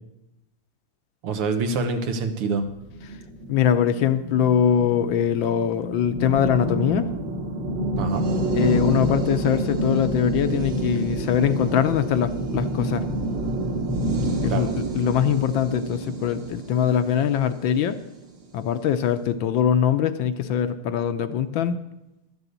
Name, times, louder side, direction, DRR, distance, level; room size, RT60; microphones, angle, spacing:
voice 1, 1.2-2.7 8.0-8.3 14.5-14.7, right 4 dB, 90° right, 6 dB, 2.2 m, -25 dB
sound 1, 2.8-18.2, right 1 dB, 60° right, 2.2 m, -28 dB
voice 2, 3.5-7.1 8.5-13.0 14.4-18.0 18.5-21.8, left 9 dB, 70° left, 10 dB, 1.3 m, -22 dB
12.5 x 7.0 x 8.0 m, 0.92 s
omnidirectional pair, 2.4 m